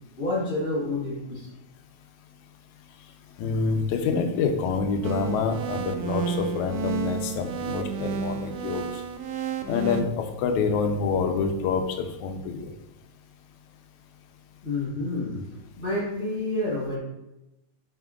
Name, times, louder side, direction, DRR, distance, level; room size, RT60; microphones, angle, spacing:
voice 1, 0.2-1.5 14.6-15.4 15.8-17.0, left 2 dB, 30° left, -6 dB, 1.8 m, -28 dB
voice 2, 3.4-8.9 9.7-11.8 12.2-12.7, left 5 dB, 80° left, 5 dB, 2.0 m, -26 dB
sound 1, 5.0-10.0, right 7 dB, 85° right, 1.5 m, -31 dB
9.5 x 5.4 x 2.5 m, 0.93 s
omnidirectional pair, 3.5 m